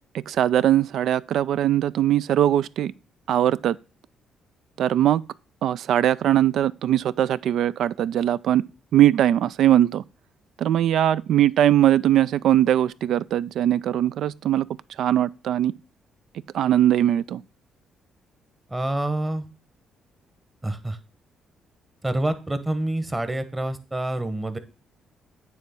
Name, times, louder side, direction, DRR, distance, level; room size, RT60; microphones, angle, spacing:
voice 1, 0.3-2.9 3.3-3.8 4.8-5.2 5.6-8.6 8.9-10.0 10.6-14.7 15.0-15.7 16.5-17.4, right 11 dB, 75° right, 0.3 m, -20 dB
voice 2, 18.7-19.5 20.6-21.0 22.0-24.6, right 1 dB, 15° right, 1.1 m, -27 dB
9.2 x 3.5 x 6.9 m
cardioid pair, 90°, 0 cm